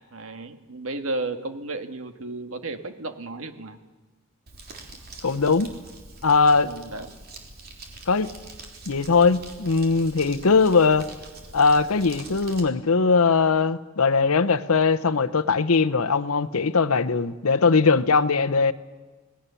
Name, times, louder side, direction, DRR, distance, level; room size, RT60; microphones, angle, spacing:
voice 1, 0.1-3.8 6.6-7.1, right 2 dB, 65° right, 1.7 m, -33 dB
Crumpling crinkling, 4.5-12.6, right 2 dB, 45° right, 3.5 m, -44 dB
voice 2, 5.2-5.7 6.2-6.7 8.1-8.3 8.9-11.1 11.5-18.7, left 4 dB, 80° left, 0.9 m, -20 dB
27.5 x 19.0 x 7.0 m
head